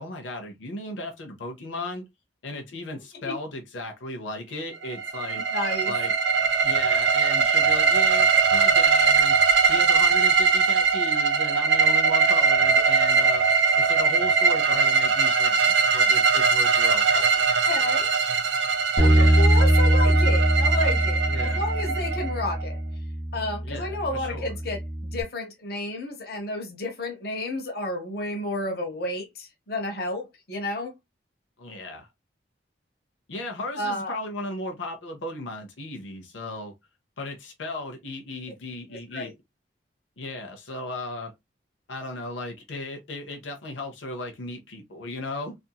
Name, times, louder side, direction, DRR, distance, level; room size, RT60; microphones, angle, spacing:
voice 1, 0.0-2.0 2.4-5.4 5.8-6.1 6.6-9.4 9.7-13.5 13.8-17.4 19.0-19.5 21.3-21.6 23.6-24.5 31.6-32.1 33.3-36.7 37.2-39.3 40.2-41.3 41.9-45.6, left 2 dB, 90° left, 0.7 m, -36 dB
sound 1, 4.8-22.7, right 5 dB, 75° right, 0.4 m, -21 dB
voice 2, 5.3-5.9 17.1-17.3 17.7-18.1 19.0-22.8 23.3-30.9 33.8-34.2 38.9-39.3, left 2 dB, 55° left, 0.8 m, -31 dB
Bass guitar, 19.0-25.2, right 1 dB, 25° right, 0.6 m, -22 dB
2.8 x 2.5 x 2.3 m
head